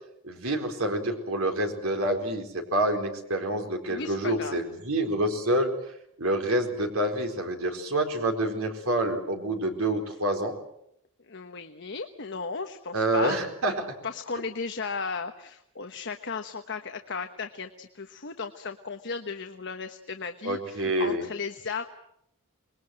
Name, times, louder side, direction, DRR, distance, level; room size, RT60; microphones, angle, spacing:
voice 1, 0.2-5.7 6.2-10.6 12.9-13.9 20.4-21.3, right 1 dB, 70° right, 4 dB, 4.2 m, -27 dB
voice 2, 3.9-4.6 11.3-13.4 14.0-21.9, left 5 dB, 55° left, 6 dB, 1.2 m, -35 dB
27.5 x 21.0 x 7.7 m, 0.76 s
head